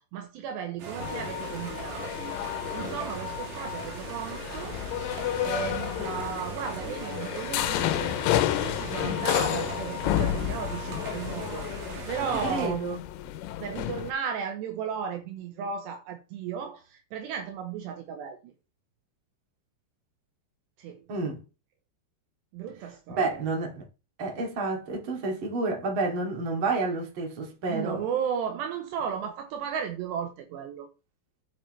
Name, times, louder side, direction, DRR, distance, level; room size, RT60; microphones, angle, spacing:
voice 1, 0.0-2.3 2.7-4.8 5.1-8.2 8.6-12.9 13.6-18.5 20.8-21.1 22.5-23.4 27.7-30.9, right 7 dB, 75° right, 2.9 m, -35 dB
sound 1, 0.8-12.7, right 4 dB, 55° right, 2.9 m, -40 dB
sound 2, 1.0-14.1, left 13 dB, 90° left, 3.2 m, -31 dB
voice 2, 12.4-13.0 21.1-21.4 23.2-23.8 24.2-28.0, right 3 dB, 35° right, 2.3 m, -29 dB
8.3 x 7.6 x 3.3 m
omnidirectional pair, 5.4 m